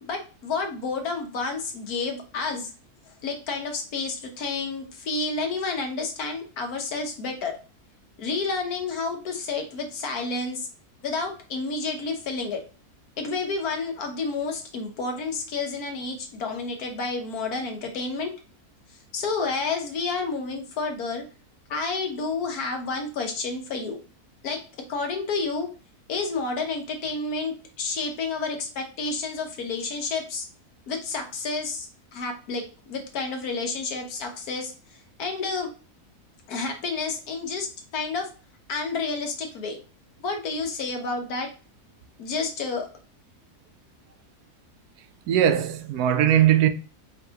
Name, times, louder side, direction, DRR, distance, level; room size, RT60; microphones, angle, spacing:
voice 1, 0.0-2.7 3.2-7.5 8.2-10.7 11.0-12.6 13.2-18.3 19.1-21.2 21.7-24.0 24.4-24.6 24.9-25.7 26.1-30.4 30.9-34.7 35.2-35.7 36.5-38.3 38.7-39.8 40.2-41.5 42.2-42.9, left 4 dB, 75° left, 1.5 m, -30 dB
voice 2, 45.3-46.7, right 10 dB, 80° right, 1.1 m, -19 dB
4.7 x 3.2 x 2.8 m
omnidirectional pair, 1.6 m